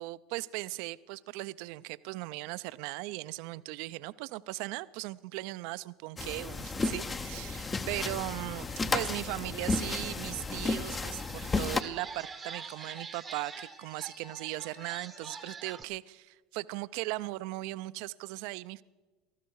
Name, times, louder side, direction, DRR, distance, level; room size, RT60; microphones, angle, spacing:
voice 1, 0.0-8.7 8.9-18.8, right 19 dB, 65° right, 16 dB, 0.4 m, -38 dB
sound 1, 6.2-11.8, left 3 dB, 25° left, 0.8 m, -33 dB
sound 2, 8.6-15.5, left 8 dB, 70° left, 1.3 m, -55 dB
sound 3, 10.0-10.1 10.5-15.8, right 6 dB, 25° right, 0.8 m, -46 dB
18.5 x 14.5 x 4.7 m, 1.2 s
hypercardioid pair, 90°, 0 cm